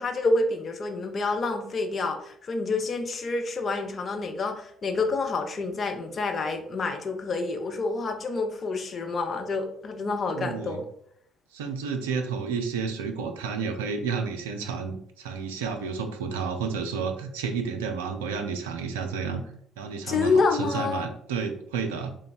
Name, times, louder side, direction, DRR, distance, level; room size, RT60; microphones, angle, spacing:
voice 1, 0.0-10.8 20.1-21.1, left 3 dB, 40° left, 4 dB, 0.6 m, -28 dB
voice 2, 10.3-10.8 11.5-19.4 19.8-22.2, right 5 dB, 75° right, 5 dB, 0.4 m, -31 dB
3.4 x 2.2 x 3.9 m, 0.67 s
figure-of-eight pair, 50°, 0 cm